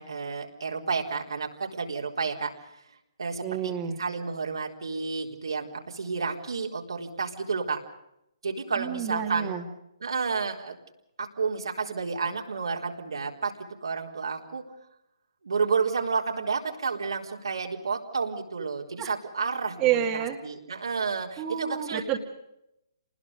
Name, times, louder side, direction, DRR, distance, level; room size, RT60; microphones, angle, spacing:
voice 1, 0.0-2.5 3.2-3.7 4.0-7.8 8.4-9.5 10.0-10.8 11.2-13.5 13.8-14.6 15.4-22.0, right 5 dB, 75° right, 1 dB, 4.1 m, -31 dB
voice 2, 3.4-4.0 8.8-9.6 19.0-19.1 19.8-20.4 21.4-22.2, right 9 dB, 25° right, 2 dB, 2.4 m, -29 dB
28.0 x 20.0 x 5.3 m, 0.82 s
figure-of-eight pair, 140°, 3 cm